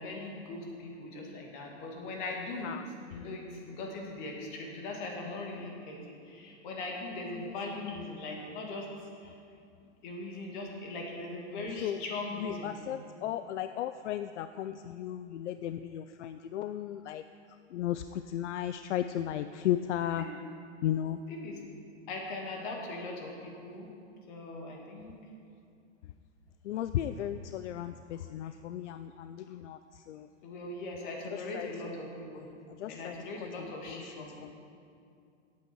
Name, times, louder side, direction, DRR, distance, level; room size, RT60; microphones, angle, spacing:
voice 1, 0.0-2.8 3.1-6.0 6.3-8.9 9.2-9.3 10.0-12.8 20.2-20.3 21.3-21.6 22.1-23.9 24.3-25.1 30.4-32.5 32.8-34.3, left 2 dB, 40° left, 0 dB, 2.3 m, -40 dB
voice 2, 7.3-7.8 11.8-12.0 12.4-17.2 17.7-20.3 20.8-21.2 26.6-30.3 31.3-31.7 32.8-33.1 33.6-34.1 34.4-34.5, left 11 dB, 70° left, 10 dB, 0.5 m, -35 dB
16.5 x 8.5 x 4.6 m, 2.4 s
supercardioid pair, 165°, 36 cm